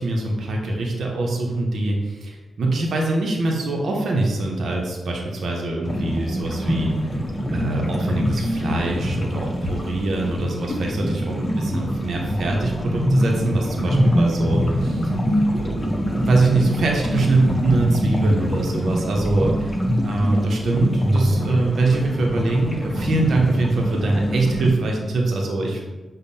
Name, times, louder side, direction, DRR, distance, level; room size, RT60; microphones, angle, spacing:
voice 1, 0.0-7.1 7.5-15.1 15.4-19.5 20.0-25.8, right 2 dB, 70° right, 0 dB, 0.6 m, -23 dB
sound 1, 5.8-24.7, equal, 30° left, 0.6 m, -24 dB
5.1 x 2.1 x 2.7 m, 1.2 s
cardioid pair, 50°, 0 cm